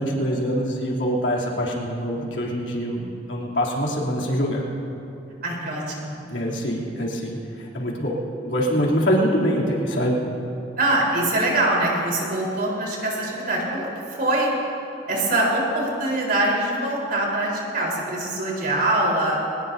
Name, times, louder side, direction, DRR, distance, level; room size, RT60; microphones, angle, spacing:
voice 1, 0.0-4.6 6.3-10.2, equal, 90° left, -3 dB, 3.1 m, -24 dB
voice 2, 5.4-6.2 10.8-14.5 15.1-19.4, right 1 dB, 55° right, -3 dB, 4.1 m, -23 dB
23.5 x 19.5 x 2.8 m, 2.9 s
head